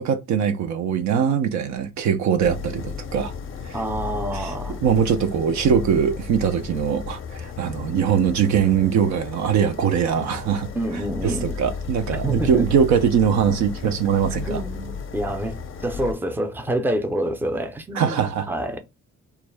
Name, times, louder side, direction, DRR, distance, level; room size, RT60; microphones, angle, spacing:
voice 1, 0.0-3.3 3.7-3.8 4.3-10.7 11.2-14.6 17.9-18.5, right 7 dB, 70° right, 0.5 m, -22 dB
Skyrim Flames, 2.4-16.1, left 6 dB, 45° left, 0.5 m, -34 dB
voice 2, 3.7-4.8 10.7-11.5 12.1-12.7 14.4-18.8, right 1 dB, 5° right, 0.5 m, -27 dB
2.3 x 2.0 x 3.2 m
supercardioid pair, 70°, 29 cm